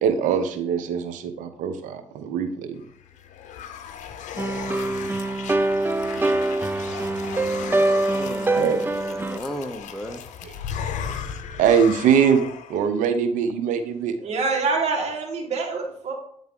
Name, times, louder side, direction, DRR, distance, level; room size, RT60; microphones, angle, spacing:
voice 1, 0.0-2.8 8.6-8.8 10.4-10.6 11.5-14.1, right 7 dB, 85° right, 8 dB, 0.8 m, -22 dB
sound 1, 2.9-12.9, left 8 dB, 75° left, 0.6 m, -36 dB
sound 2, 4.4-9.4, right 2 dB, 15° right, 0.4 m, -24 dB
voice 2, 8.1-10.2, equal, 5° left, 7 dB, 0.8 m, -35 dB
voice 3, 14.2-16.1, right 4 dB, 60° right, 0 dB, 1.7 m, -25 dB
9.0 x 3.6 x 3.7 m, 0.65 s
supercardioid pair, 65°, 13 cm